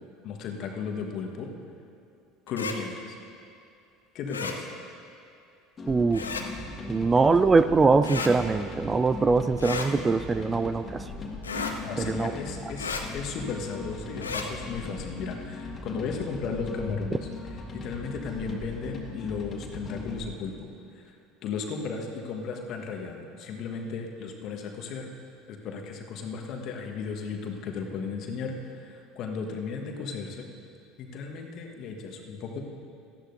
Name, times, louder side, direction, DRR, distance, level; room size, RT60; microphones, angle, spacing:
voice 1, 0.2-1.5 2.5-3.2 4.1-4.7 11.8-17.3 17.7-21.1 21.4-25.1 25.5-30.5 31.0-32.6, left 5 dB, 50° left, 2 dB, 1.4 m, -35 dB
sound 1, 2.5-2.8 4.3-4.6 6.1-6.5 8.0-8.3 9.6-9.9 11.4-11.8 12.8-13.0 14.2-14.5, left 5 dB, 80° left, 0.7 m, -33 dB
sound 2, 5.8-20.3, left 2 dB, 30° left, 1.9 m, -39 dB
voice 2, 5.9-6.3 6.9-11.1 12.0-12.3, right 4 dB, 20° right, 12 dB, 0.3 m, -22 dB
18.0 x 13.5 x 2.7 m, 2.5 s
figure-of-eight pair, 70°, 0 cm